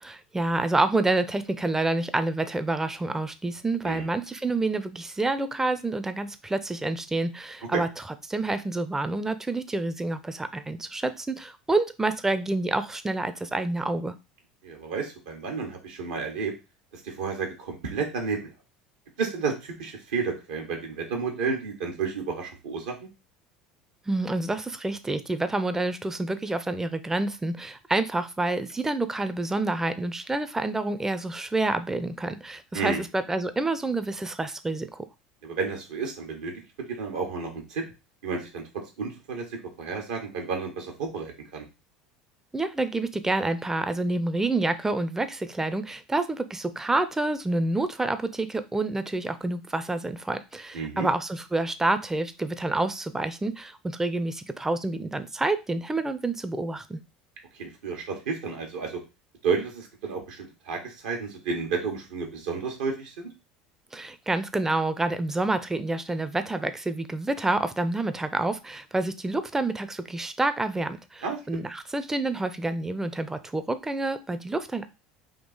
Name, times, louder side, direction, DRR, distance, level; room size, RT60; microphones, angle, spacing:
voice 1, 0.0-7.9 8.3-14.1 24.1-35.0 42.5-57.0 63.9-74.9, right 2 dB, 10° right, 11 dB, 0.5 m, -28 dB
voice 2, 14.6-16.5 17.0-18.5 19.2-23.1 32.7-33.0 35.4-36.6 36.9-37.8 38.2-38.6 39.0-39.4 39.8-41.6 50.7-51.1 57.6-59.0 59.4-63.3 71.2-71.6, right 5 dB, 80° right, 2 dB, 1.2 m, -31 dB
3.7 x 2.8 x 4.0 m, 0.27 s
hypercardioid pair, 75°, 4 cm